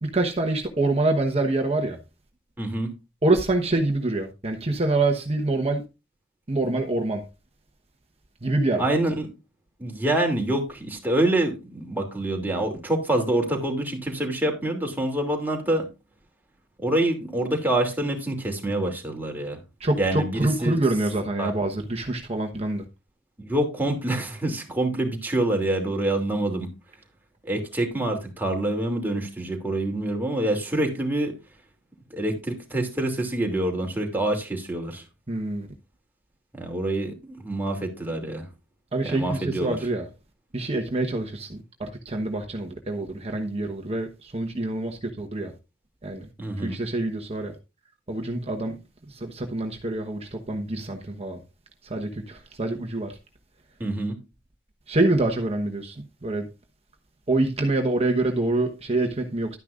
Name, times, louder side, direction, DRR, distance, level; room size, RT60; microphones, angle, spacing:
voice 1, 0.0-2.0 3.2-5.9 6.5-7.2 8.4-8.9 19.8-22.8 35.3-35.7 38.9-40.1 40.5-45.5 46.0-46.2 46.6-47.5 48.1-48.8 49.1-51.4 51.8-53.2 54.9-56.5 57.3-59.6, right 2 dB, 30° right, 1.1 m, -26 dB
voice 2, 2.6-2.9 8.8-9.3 9.8-15.8 16.8-19.6 20.0-20.8 21.4-21.5 23.5-26.7 27.4-31.3 32.1-35.0 36.5-38.4 39.0-39.8 46.4-46.8 53.8-54.1, right 1 dB, 10° right, 2.7 m, -26 dB
12.0 x 9.8 x 2.5 m
head